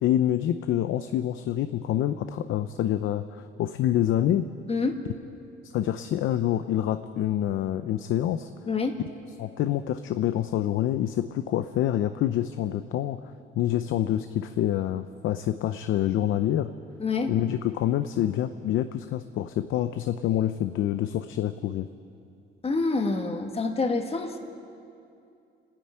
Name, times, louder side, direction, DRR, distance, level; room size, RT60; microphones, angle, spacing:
voice 1, 0.0-4.5 5.6-8.5 9.4-13.2 13.6-16.7 17.3-21.9, left 11 dB, 80° left, 10 dB, 0.7 m, -26 dB
voice 2, 17.0-17.3 22.6-24.4, left 3 dB, 30° left, 4 dB, 1.9 m, -27 dB
29.5 x 10.0 x 8.8 m, 2.5 s
cardioid pair, 90°, 20 cm